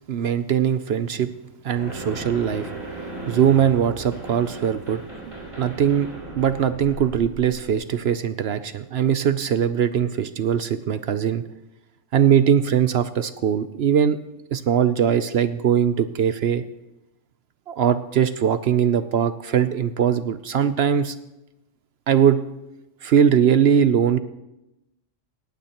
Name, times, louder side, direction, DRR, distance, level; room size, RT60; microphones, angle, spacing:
voice 1, 0.1-1.3 1.6-2.7 3.3-6.1 6.4-11.4 12.1-14.2 14.5-16.6 17.7-21.1 22.1-22.4 23.0-24.2, right 8 dB, 60° right, 12 dB, 0.8 m, -21 dB
sound 1, 1.8-7.8, right 2 dB, 25° right, 6.1 m, -36 dB
19.0 x 15.0 x 3.0 m, 0.94 s
omnidirectional pair, 1.3 m